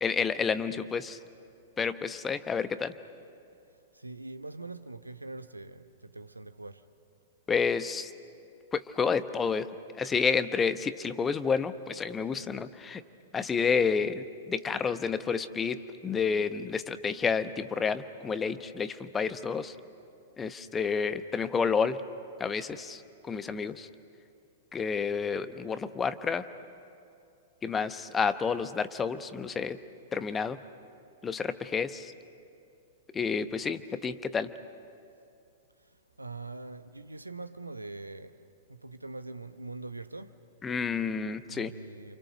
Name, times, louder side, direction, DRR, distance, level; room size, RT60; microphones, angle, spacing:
voice 1, 0.0-1.2 1.8-2.9 7.5-8.1 8.7-9.7 9.9-13.0 13.3-19.7 20.4-22.0 22.4-23.9 24.7-26.4 27.6-29.8 30.1-30.6 31.2-32.1 33.1-34.5 40.6-41.7, left 5 dB, 15° left, 1.0 m, -30 dB
voice 2, 3.9-6.8 36.2-40.4 41.2-42.2, right 3 dB, 90° right, 0.9 m, -43 dB
29.5 x 27.0 x 6.7 m
figure-of-eight pair, 105°, 0 cm